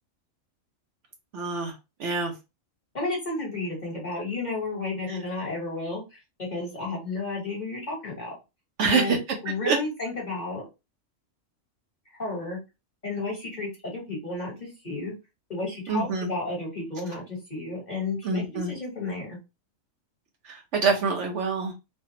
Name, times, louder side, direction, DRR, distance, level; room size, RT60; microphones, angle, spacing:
voice 1, 1.3-1.7 2.0-2.3 5.1-5.2 8.8-9.2 9.7-9.8 15.9-16.3 18.2-18.7 20.4-21.7, right 4 dB, 65° right, 2 dB, 1.0 m, -25 dB
voice 2, 2.9-6.2 6.5-8.3 8.8-9.2 9.4-10.6 12.2-12.6 13.0-15.1 15.5-19.4, left 2 dB, 35° left, -3 dB, 1.3 m, -32 dB
3.3 x 2.3 x 2.8 m, 0.26 s
omnidirectional pair, 1.4 m